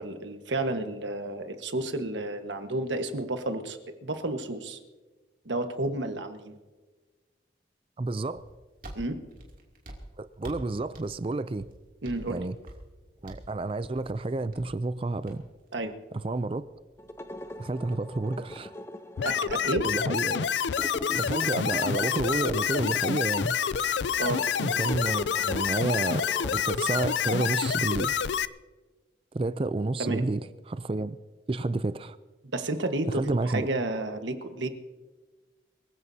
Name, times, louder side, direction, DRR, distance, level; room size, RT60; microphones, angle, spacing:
voice 1, 0.0-4.8 5.4-6.6 8.9-9.2 12.0-12.4 15.7-15.9 19.2-19.9 24.2-24.4 30.0-30.3 32.5-34.7, right 2 dB, 90° right, 7 dB, 1.4 m, -31 dB
voice 2, 8.0-8.4 10.2-11.7 12.3-12.5 13.2-15.4 16.2-16.6 17.6-18.7 19.8-20.5 21.1-23.6 24.6-28.1 29.3-31.2 31.5-32.2 33.1-33.7, right 2 dB, 30° right, 14 dB, 0.4 m, -30 dB
sound 1, 8.3-18.2, right 1 dB, 50° right, 2.8 m, -48 dB
sound 2, 17.0-27.7, left 1 dB, 15° left, 0.6 m, -43 dB
sound 3, 19.2-28.5, left 7 dB, 80° left, 0.4 m, -28 dB
23.5 x 15.5 x 2.8 m, 1.3 s
head